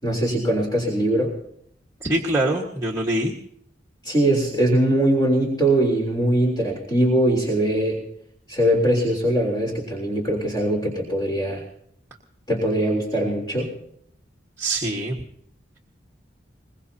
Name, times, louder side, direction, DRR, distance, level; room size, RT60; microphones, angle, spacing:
voice 1, 0.0-1.3 4.0-8.0 8.5-11.6 12.5-13.7, right 1 dB, 20° left, -2 dB, 3.5 m, -21 dB
voice 2, 2.0-3.3 14.6-15.2, right 1 dB, 15° right, -4 dB, 1.6 m, -24 dB
22.5 x 21.0 x 2.8 m, 0.68 s
head